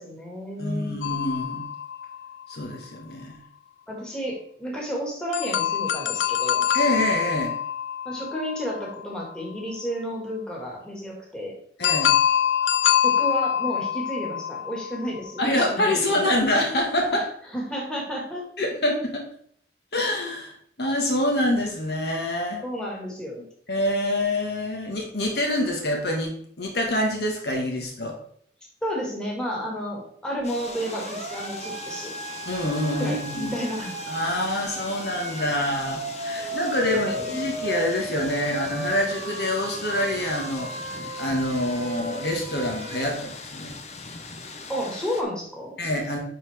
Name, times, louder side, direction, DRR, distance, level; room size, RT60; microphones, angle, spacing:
voice 1, 0.0-1.0 3.9-6.6 8.1-11.5 13.0-16.3 17.1-17.2 17.5-18.4 22.6-23.5 28.8-32.1 33.0-33.9 36.4-36.6 36.9-37.3 44.7-45.8, equal, 5° left, -3 dB, 1.9 m, -31 dB
voice 2, 0.6-1.6 2.5-3.3 6.7-7.5 11.8-12.2 15.4-17.2 18.6-19.2 19.9-20.5 20.8-22.6 23.7-26.3 26.6-28.2 32.4-33.5 34.1-40.7 41.2-43.7 45.8-46.2, left 1 dB, 65° left, 0 dB, 1.6 m, -26 dB
sound 1, 1.0-2.7 5.3-9.2 11.8-15.3, left 9 dB, 80° left, 0.5 m, -25 dB
sound 2, 30.4-45.2, left 4 dB, 40° left, 0.8 m, -40 dB
Siren, 30.7-43.0, right 2 dB, 40° right, 0.8 m, -35 dB
10.0 x 4.1 x 3.5 m, 0.62 s
head